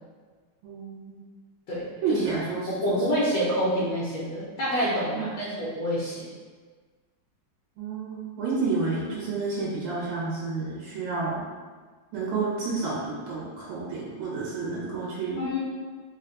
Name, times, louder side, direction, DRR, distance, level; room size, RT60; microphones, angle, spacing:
voice 1, 0.6-1.2 2.0-3.0 5.1-5.4 7.8-11.4 12.1-15.4, right 4 dB, 90° right, -6 dB, 1.7 m, -30 dB
voice 2, 1.7-2.2 2.7-6.3 15.4-15.6, equal, 70° left, -8 dB, 1.5 m, -27 dB
3.9 x 2.3 x 3.8 m, 1.4 s
omnidirectional pair, 2.2 m